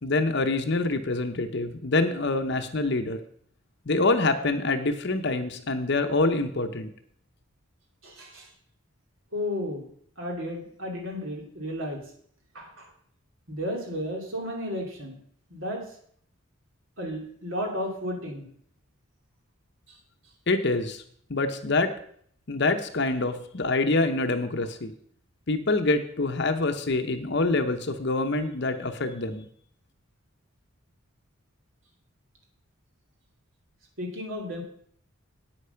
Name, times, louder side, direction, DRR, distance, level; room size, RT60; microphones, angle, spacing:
voice 1, 0.0-3.2 3.9-6.9 20.5-21.0 21.3-21.9 22.5-24.9 25.5-29.5, left 2 dB, 50° left, 7 dB, 0.8 m, -26 dB
voice 2, 8.0-8.5 9.3-9.9 10.2-12.0 12.5-12.9 13.5-15.2 15.5-15.8 17.0-18.5 34.0-34.6, equal, 65° right, 1 dB, 2.8 m, -33 dB
9.0 x 8.4 x 5.7 m, 0.62 s
head